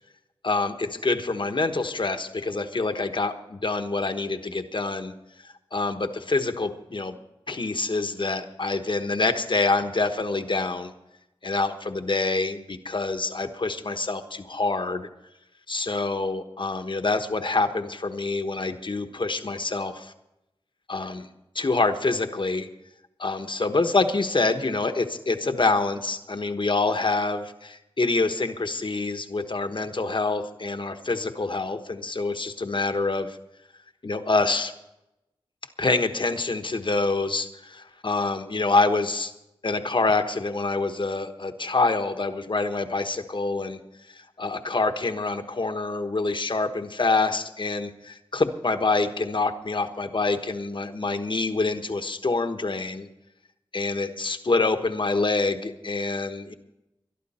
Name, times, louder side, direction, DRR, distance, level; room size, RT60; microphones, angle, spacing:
voice 1, 0.4-5.1 5.4-7.2 7.5-10.9 11.4-15.1 15.7-20.1 20.9-21.3 21.5-22.7 23.2-33.4 34.0-34.7 35.8-39.3 39.6-43.8 44.1-53.1 53.7-56.5, left 3 dB, 55° left, 8 dB, 1.2 m, -26 dB
21.5 x 11.5 x 4.3 m, 0.90 s
cardioid pair, 40°, 10 cm